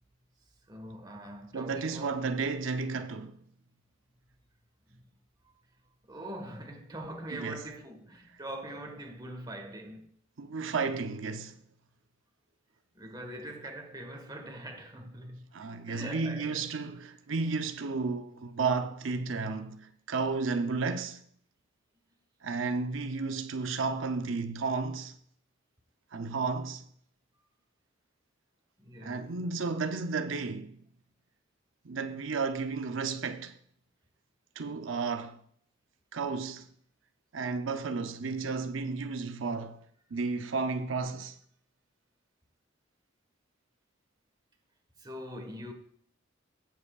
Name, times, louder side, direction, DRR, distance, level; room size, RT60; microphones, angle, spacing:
voice 1, 0.7-2.2 4.9-5.0 6.1-10.1 12.9-16.7 28.8-29.3 45.0-45.7, right 1 dB, 20° right, 1.5 m, -43 dB
voice 2, 1.5-3.4 7.4-7.6 10.4-11.6 15.5-21.2 22.4-25.2 26.1-26.8 29.0-30.8 31.8-33.5 34.6-35.4 36.1-36.7 37.3-39.8 40.1-41.4, right 4 dB, 90° right, 0.7 m, -33 dB
16.5 x 7.7 x 2.4 m
head